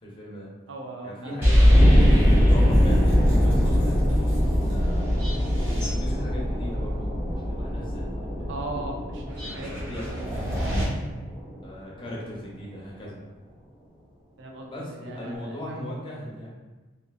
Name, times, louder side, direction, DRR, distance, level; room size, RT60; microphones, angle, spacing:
voice 1, 0.0-0.5 1.0-4.0 4.5-5.3 5.6-8.5 9.6-10.8 11.6-13.2 14.7-16.5, equal, 25° left, -5 dB, 0.7 m, -38 dB
voice 2, 0.7-1.4 8.5-10.4 14.4-15.8, right 2 dB, 65° right, 0 dB, 0.5 m, -38 dB
sound 1, 1.4-10.8, equal, 15° right, 1.0 m, -22 dB
sound 2, 1.7-12.4, equal, 40° right, 1.2 m, -28 dB
3.5 x 2.5 x 2.4 m, 1.2 s
head